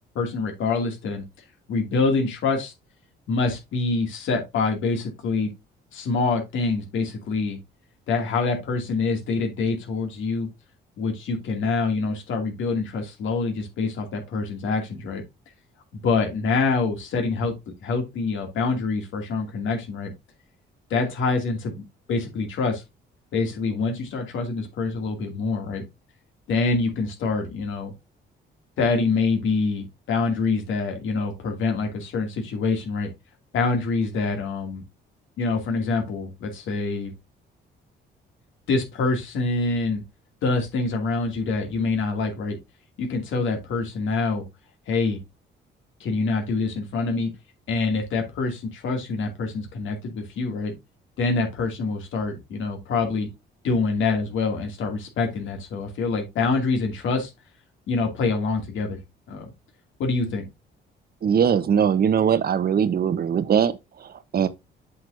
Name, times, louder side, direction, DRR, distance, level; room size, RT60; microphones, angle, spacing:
voice 1, 0.1-1.2 1.7-2.7 3.3-5.5 5.9-7.6 8.1-10.5 11.0-15.2 15.9-17.5 17.8-20.1 20.9-21.8 22.1-22.8 23.3-25.8 26.5-27.9 28.8-33.1 33.5-34.8 35.4-37.1 38.7-40.0 40.4-42.6 43.0-44.4 44.9-45.2 46.0-47.3 47.7-50.8 51.2-53.3 53.6-57.3 57.9-59.0 59.3-59.5 60.0-60.5, left 3 dB, 80° left, 2.3 m, -25 dB
voice 2, 61.2-64.5, right 8 dB, 50° right, 0.9 m, -21 dB
7.8 x 5.9 x 2.6 m
cardioid pair, 90°, 20 cm